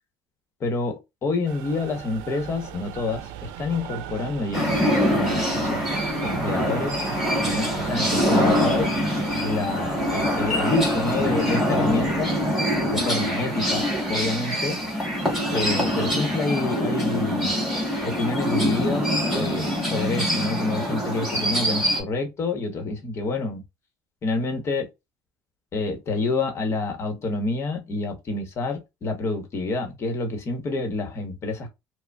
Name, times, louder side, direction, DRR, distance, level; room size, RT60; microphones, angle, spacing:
voice 1, 0.6-5.9 6.2-7.0 7.4-8.9 9.4-12.4 12.9-14.8 15.5-17.6 18.0-23.6 24.2-24.9 25.7-31.7, left 3 dB, 35° left, 0.9 m, -28 dB
sound 1, 1.5-16.3, right 9 dB, 85° right, 0.5 m, -37 dB
sound 2, 4.5-22.0, equal, ahead, 1.6 m, -24 dB
4.9 x 2.0 x 2.3 m
cardioid pair, 145°, 8 cm